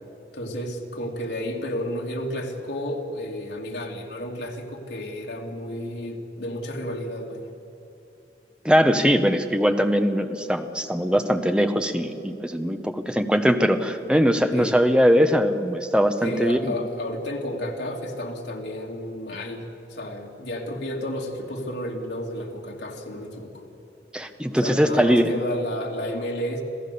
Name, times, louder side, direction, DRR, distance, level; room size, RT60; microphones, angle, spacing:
voice 1, 0.3-7.4 14.5-14.8 16.2-23.7 24.6-26.6, left 1 dB, 80° left, 0 dB, 2.5 m, -32 dB
voice 2, 8.6-16.7 24.1-25.2, equal, 5° right, 7 dB, 1.0 m, -21 dB
26.5 x 16.0 x 6.9 m, 2.9 s
head